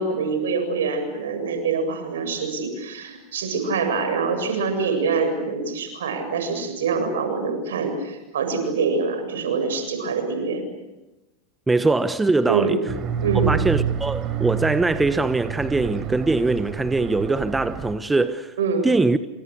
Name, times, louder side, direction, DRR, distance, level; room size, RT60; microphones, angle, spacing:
voice 1, 0.0-10.6 12.4-12.8 13.2-13.5 18.6-18.9, right 4 dB, 75° right, 7.6 m, -25 dB
voice 2, 11.7-12.8 13.4-18.5 18.8-19.2, right 3 dB, 10° right, 1.2 m, -22 dB
sound 1, 12.9-17.9, right 9 dB, 40° right, 4.9 m, -28 dB
29.5 x 27.0 x 6.6 m
hypercardioid pair, 95°, 0 cm